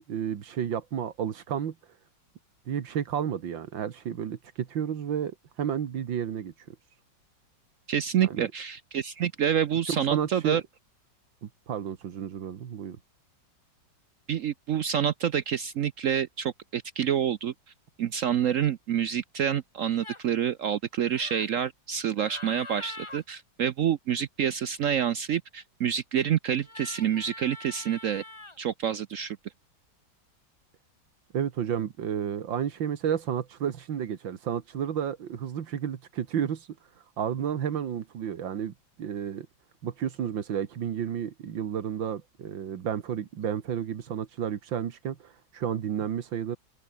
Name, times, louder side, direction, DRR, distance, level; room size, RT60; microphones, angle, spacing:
voice 1, 0.1-1.7 2.7-6.8 8.2-8.5 9.9-10.6 11.4-13.0 31.3-36.7 37.2-39.5 39.8-46.6, right 8 dB, 85° right, 2.2 m, -31 dB
voice 2, 7.9-10.6 14.3-17.5 18.0-28.2 28.6-29.4, right 9 dB, 65° right, 0.8 m, -27 dB
sound 1, 19.9-20.3 21.1-21.5 22.2-23.2 26.6-28.6, left 2 dB, 15° left, 2.0 m, -43 dB
open air
omnidirectional pair, 2.0 m